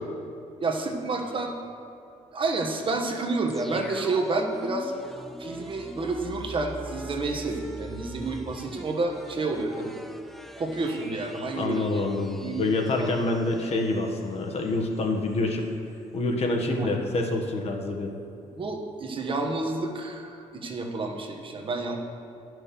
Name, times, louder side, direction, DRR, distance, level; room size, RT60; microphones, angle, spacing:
voice 1, 0.6-1.5 2.3-4.9 5.4-10.0 10.6-12.0 12.4-12.7 13.0-13.1 16.8-16.9 18.6-22.0, right 3 dB, 40° right, 2 dB, 1.2 m, -29 dB
sound 1, 3.5-14.3 14.6-14.7, right 1 dB, ahead, 0.5 m, -42 dB
voice 2, 11.6-15.6 16.1-18.1, left 2 dB, 50° left, 2 dB, 1.4 m, -27 dB
9.7 x 6.2 x 6.9 m, 2.6 s
cardioid pair, 110°, 13 cm